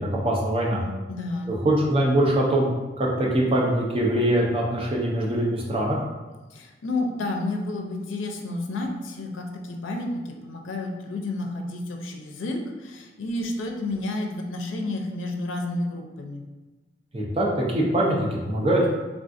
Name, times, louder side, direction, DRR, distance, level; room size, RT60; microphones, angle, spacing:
voice 1, 0.0-0.8 1.5-2.7 3.0-6.0 17.1-18.9, right 1 dB, 30° right, -3 dB, 0.5 m, -23 dB
voice 2, 0.8-1.5 6.5-16.4, left 2 dB, 90° left, 2 dB, 0.4 m, -31 dB
3.4 x 2.4 x 2.5 m, 1.2 s
head